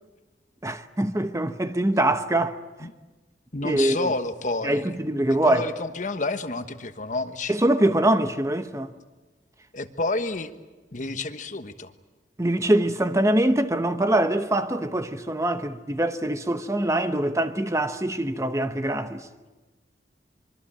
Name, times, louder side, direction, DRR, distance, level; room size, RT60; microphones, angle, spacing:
voice 1, 0.6-2.6 3.6-4.1 4.6-5.6 7.5-8.9 12.4-19.3, right 1 dB, 15° right, 0.9 m, -23 dB
voice 2, 3.5-4.9 5.4-7.5 9.7-10.5 10.9-11.9, left 3 dB, 45° left, 1.2 m, -29 dB
25.0 x 24.0 x 8.7 m
head